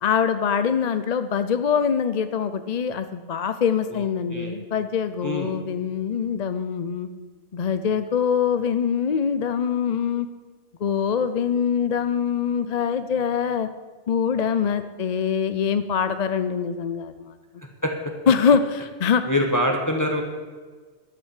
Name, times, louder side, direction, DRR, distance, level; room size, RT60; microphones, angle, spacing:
voice 1, 0.0-7.1 7.5-10.3 10.8-13.7 14.1-17.4 18.3-19.2, left 7 dB, 45° left, 10 dB, 0.6 m, -23 dB
voice 2, 5.2-5.5 17.8-17.9 19.2-20.2, left 1 dB, 15° left, 2 dB, 1.4 m, -24 dB
12.0 x 8.6 x 8.2 m, 1.4 s
omnidirectional pair, 1.2 m